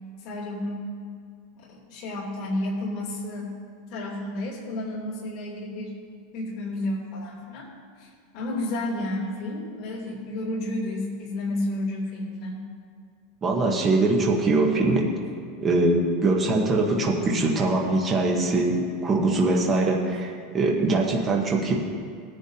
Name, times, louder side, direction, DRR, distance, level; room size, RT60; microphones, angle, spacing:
voice 1, 0.2-0.8 1.6-3.5 3.9-6.0 6.3-7.7 8.0-8.1 8.3-12.6, left 1 dB, 40° left, -7 dB, 3.1 m, -31 dB
voice 2, 13.4-15.1 15.6-21.7, right 2 dB, 15° right, -1 dB, 0.9 m, -22 dB
18.5 x 10.0 x 2.8 m, 2.2 s
supercardioid pair, 180°, 0 cm